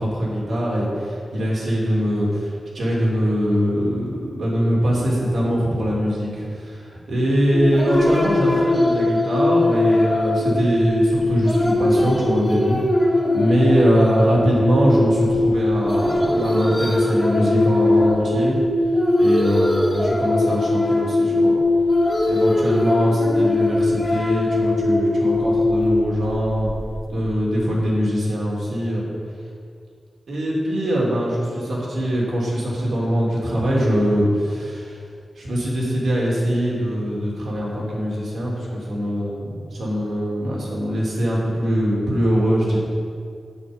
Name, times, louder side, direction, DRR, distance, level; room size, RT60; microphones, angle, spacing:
voice 1, 0.0-18.6 19.2-21.6 22.3-26.7 27.1-29.1 30.3-35.0 35.4-42.8, equal, 80° right, -4 dB, 3.1 m, -22 dB
sound 1, 7.5-27.1, left 2 dB, 10° left, 1.9 m, -20 dB
10.0 x 8.9 x 5.4 m, 2.3 s
wide cardioid pair, 165°, 0 cm